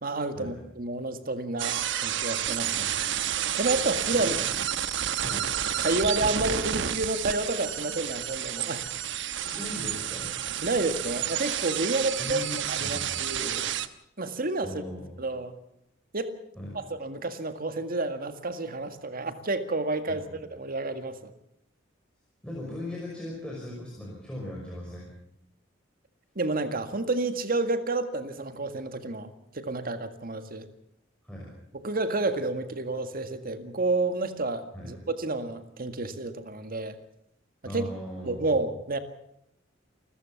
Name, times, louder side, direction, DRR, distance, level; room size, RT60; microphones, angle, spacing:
voice 1, 0.0-2.9 3.6-4.3 5.8-8.9 10.6-12.4 12.7-13.7 14.2-14.8 15.2-15.5 16.1-16.3 16.7-21.3 26.4-29.3 29.5-30.7 31.8-37.0 37.6-37.9 38.2-39.0, right 2 dB, 50° right, 9 dB, 1.9 m, -30 dB
sound 1, 1.6-13.9, right 10 dB, 65° right, 1.1 m, -30 dB
voice 2, 4.1-4.4 5.2-5.5 9.4-10.3 12.2-13.2 14.6-15.1 16.5-16.8 20.1-20.3 22.4-25.1 31.2-31.5 34.7-34.9 37.6-38.4, left 1 dB, 5° left, -4 dB, 5.7 m, -38 dB
28.5 x 14.0 x 7.2 m, 0.78 s
head